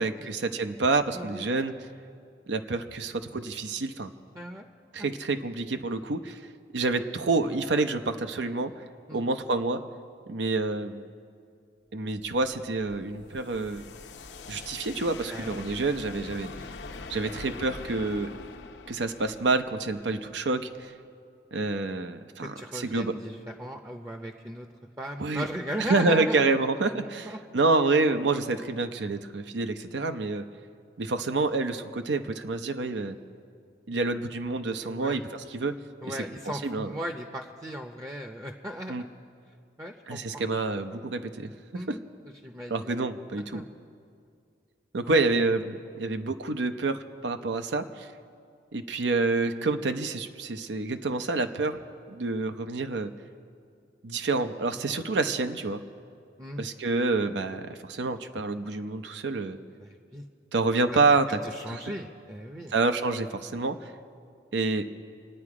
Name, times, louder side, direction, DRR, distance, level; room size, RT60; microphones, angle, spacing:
voice 1, 0.0-1.7 2.5-4.1 4.9-6.4 6.7-8.7 9.1-9.8 10.3-11.0 11.9-13.9 14.5-16.5 17.1-18.3 18.9-20.9 21.5-23.1 25.2-25.5 25.8-30.5 31.0-33.2 33.9-35.8 36.1-36.2 36.6-36.9 38.9-39.0 40.1-42.0 42.7-43.6 44.9-48.1 48.7-51.8 52.1-53.1 54.0-55.8 56.6-59.6 60.5-61.4 61.7-61.8 62.7-63.9 64.5-64.9, right 3 dB, 90° right, 8 dB, 0.7 m, -28 dB
voice 2, 1.1-1.5 4.3-4.7 5.0-5.1 9.1-9.2 15.3-15.7 17.2-17.6 22.4-24.7 25.0-26.5 27.3-27.4 34.8-35.2 36.0-39.0 39.8-40.4 41.7-42.1 42.4-43.0 43.5-43.6 54.8-54.9 56.4-56.7 59.7-60.2 61.4-62.7, equal, 15° right, 4 dB, 0.6 m, -37 dB
sound 1, 12.2-21.0, left 3 dB, 85° left, 0.8 m, -44 dB
27.5 x 9.3 x 4.9 m, 2.3 s
head